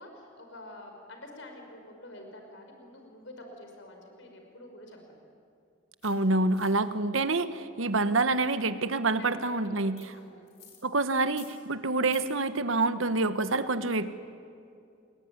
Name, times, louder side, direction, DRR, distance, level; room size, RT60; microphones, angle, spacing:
voice 1, 0.0-5.2 9.2-10.4, left 1 dB, 70° left, 3 dB, 5.5 m, -48 dB
sound 1, 6.0-6.1 6.5-6.7 10.0-10.1 10.5-10.8 11.2-11.5 11.9-12.2, left 8 dB, 50° left, 5.4 m, -51 dB
voice 2, 6.0-10.1 10.8-14.1, right 3 dB, 80° right, 11 dB, 1.3 m, -27 dB
29.0 x 21.5 x 9.6 m, 2.5 s
head